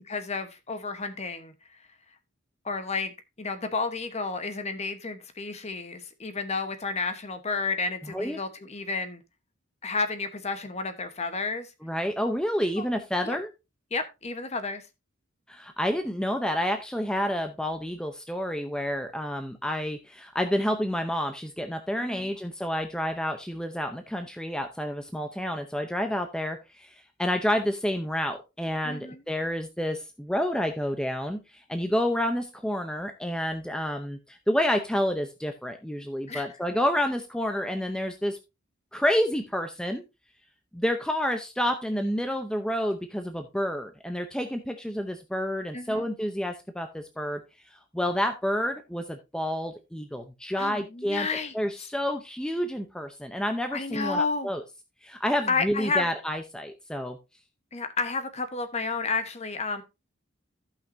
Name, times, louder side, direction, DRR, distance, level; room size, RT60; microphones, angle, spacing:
voice 1, 0.1-1.5 2.6-3.1 3.4-9.2 9.8-11.7 12.6-12.8 13.2-13.4 13.9-14.9 22.0-22.3 28.8-29.2 36.3-36.5 45.7-46.1 50.6-51.5 51.8-51.9 53.7-54.5 55.5-56.1 57.7-59.8, left 4 dB, 35° left, 1.0 m, -31 dB
voice 2, 8.1-8.4 11.8-13.5 15.5-26.9 27.2-38.4 38.9-40.0 40.7-47.4 47.9-51.3 51.5-54.6 55.0-57.2, equal, 5° left, 0.6 m, -29 dB
15.0 x 5.7 x 2.6 m
head